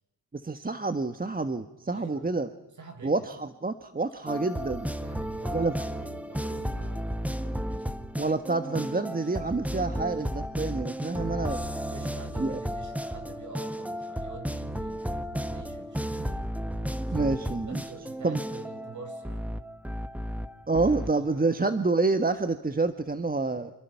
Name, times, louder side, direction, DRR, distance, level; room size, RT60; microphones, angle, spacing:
voice 1, 0.3-2.5 3.0-4.9 5.5-5.7 8.2-11.6 12.4-12.6 17.1-17.8 18.2-18.4 20.7-23.7, right 3 dB, 20° right, 9 dB, 1.3 m, -28 dB
voice 2, 1.9-2.3 2.7-3.3 4.9-8.0 11.8-16.5 17.1-19.4 20.9-21.7, right 3 dB, 45° right, 5 dB, 7.3 m, -47 dB
sound 1, 4.3-21.1, equal, 5° right, 1.5 m, -33 dB
29.0 x 27.5 x 5.8 m, 0.96 s
cardioid pair, 65°, 40 cm